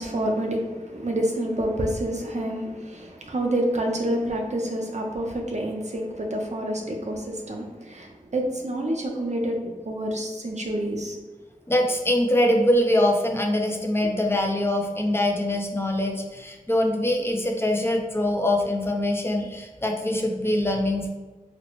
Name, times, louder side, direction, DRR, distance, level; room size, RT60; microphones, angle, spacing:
voice 1, 0.0-11.2, right 1 dB, 55° right, 1 dB, 0.6 m, -28 dB
voice 2, 11.7-21.1, left 1 dB, 15° left, 1 dB, 0.5 m, -23 dB
4.1 x 2.1 x 3.0 m, 1.2 s
wide cardioid pair, 55°, 14 cm